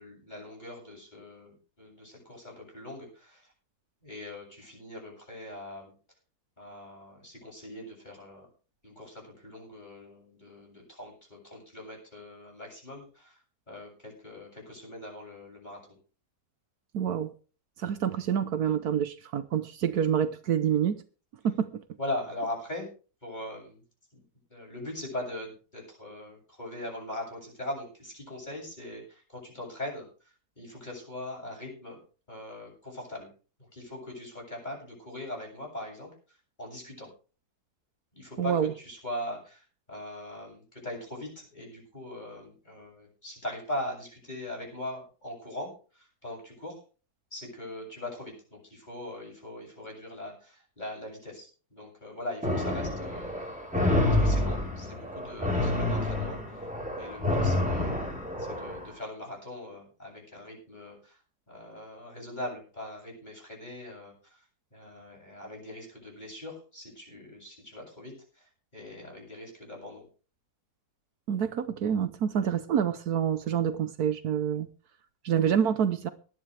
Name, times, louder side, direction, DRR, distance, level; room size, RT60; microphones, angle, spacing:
voice 1, 0.0-3.5 4.0-5.9 6.6-8.5 8.8-13.4 13.7-15.8 22.0-22.9 23.2-23.8 24.1-24.2 24.5-30.1 30.6-32.0 32.3-33.3 33.7-37.1 38.1-46.8 47.3-53.5 53.8-56.7 57.0-58.1 58.4-61.2 61.5-64.4 64.7-70.0, left 1 dB, 25° left, 8.0 m, -41 dB
voice 2, 16.9-17.3 17.8-21.0 21.4-21.8 38.4-38.7 71.3-74.7 75.2-76.1, right 8 dB, 75° right, 1.4 m, -27 dB
sound 1, 52.4-58.9, left 1 dB, 5° right, 4.1 m, -28 dB
18.5 x 12.0 x 3.4 m
omnidirectional pair, 1.7 m